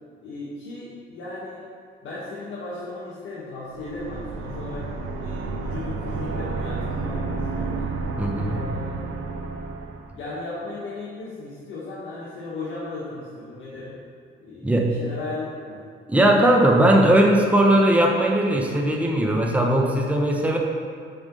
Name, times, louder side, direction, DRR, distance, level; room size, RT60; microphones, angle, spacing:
voice 1, 0.2-1.6 2.0-4.9 5.2-7.9 8.3-9.0 10.1-14.0 14.4-15.8, left 2 dB, 75° left, -8 dB, 1.4 m, -36 dB
sound 1, 3.7-10.2, right 3 dB, 85° right, 0.6 m, -31 dB
voice 2, 8.2-8.6 14.6-14.9 16.1-20.6, right 1 dB, 5° right, 0 dB, 0.8 m, -19 dB
5.4 x 4.9 x 5.3 m, 2.1 s
cardioid pair, 90°, 20 cm